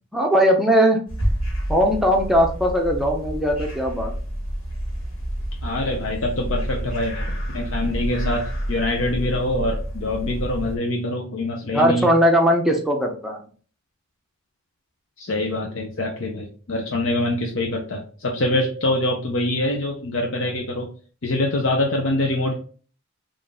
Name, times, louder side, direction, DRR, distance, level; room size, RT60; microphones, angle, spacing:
voice 1, 0.1-1.0 1.7-4.1 11.7-13.4, equal, ahead, 1 dB, 0.6 m, -19 dB
sound 1, 1.1-10.8, equal, 90° left, 1.4 m, -29 dB
voice 2, 5.6-7.3 7.5-12.1 15.2-20.9 21.2-22.5, left 1 dB, 70° left, 1 dB, 0.6 m, -24 dB
3.9 x 2.5 x 3.3 m, 0.40 s
head